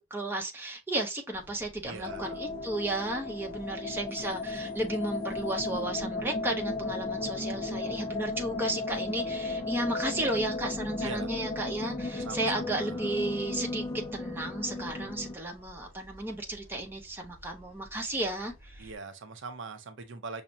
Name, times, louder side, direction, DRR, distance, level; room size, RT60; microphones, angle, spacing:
voice 1, 0.1-13.8 14.1-18.9, right 1 dB, 10° right, 0.7 m, -33 dB
sound 1, 1.3-18.9, equal, 45° left, 1.5 m, -53 dB
voice 2, 1.8-2.4 11.0-11.3 12.3-13.2 18.8-20.4, right 4 dB, 65° right, 0.5 m, -42 dB
sound 2, 2.0-15.4, left 3 dB, 20° left, 0.3 m, -35 dB
5.7 x 2.1 x 2.6 m
head